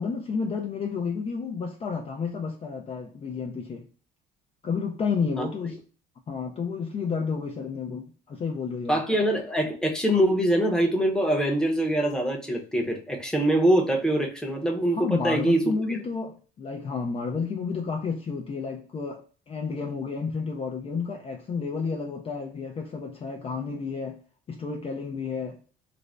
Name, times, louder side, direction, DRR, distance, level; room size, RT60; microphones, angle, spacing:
voice 1, 0.0-3.9 4.6-5.8 6.3-9.0 14.9-24.2 24.5-25.6, left 5 dB, 30° left, 0.4 m, -31 dB
voice 2, 8.9-15.6, right 1 dB, 5° left, 0.7 m, -24 dB
2.5 x 2.0 x 3.2 m
cardioid pair, 105°, 19 cm